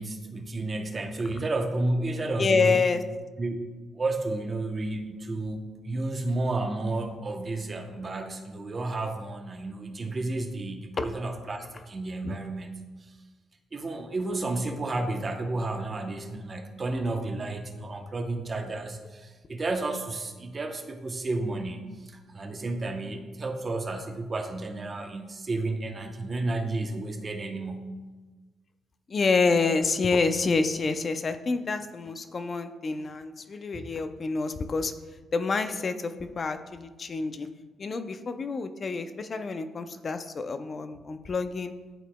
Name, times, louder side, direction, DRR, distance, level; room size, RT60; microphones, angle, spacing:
voice 1, 0.0-2.9 3.4-3.7 3.9-12.7 13.0-13.1 13.7-27.9, right 2 dB, 35° right, 4 dB, 0.8 m, -32 dB
voice 2, 2.4-3.0 11.0-11.1 12.2-12.4 29.1-34.9 35.3-37.5 37.8-41.7, left 4 dB, 40° left, 9 dB, 0.5 m, -27 dB
11.0 x 4.1 x 2.2 m, 1.3 s
cardioid pair, 90°, 0 cm